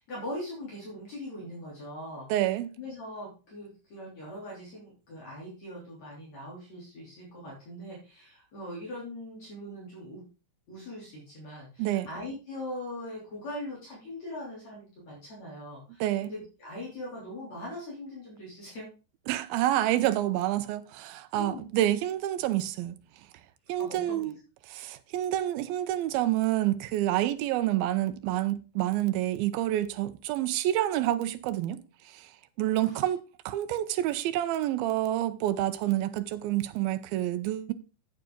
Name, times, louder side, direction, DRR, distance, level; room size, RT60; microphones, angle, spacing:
voice 1, 0.0-2.3 2.8-10.2 10.7-18.9 21.3-21.7 23.8-24.3 32.7-33.0, left 1 dB, 50° left, 4.4 m, -41 dB
voice 2, 2.3-2.7 11.8-12.1 16.0-16.3 19.3-23.0 23.7-24.3 24.7-31.8 32.1-32.3 32.6-37.7, right 13 dB, 85° right, 2.6 m, -28 dB
9.4 x 8.8 x 3.7 m
omnidirectional pair, 4.2 m